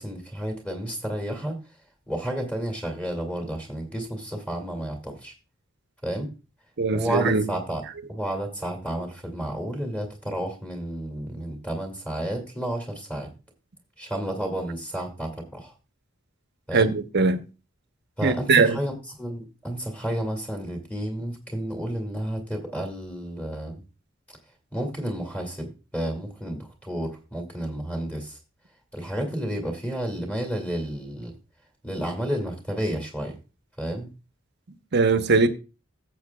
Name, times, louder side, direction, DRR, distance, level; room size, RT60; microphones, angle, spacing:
voice 1, 0.0-1.6 2.1-5.3 6.0-6.3 6.9-7.8 8.1-13.3 14.0-15.7 16.7-16.9 18.2-18.9 19.2-23.8 24.7-28.4 28.9-31.3 31.8-33.4 33.8-34.1, right 1 dB, 5° left, 2.3 m, -31 dB
voice 2, 6.8-7.5 16.7-17.4 18.2-18.8 34.9-35.5, right 4 dB, 55° right, 0.8 m, -21 dB
15.5 x 7.6 x 2.3 m
head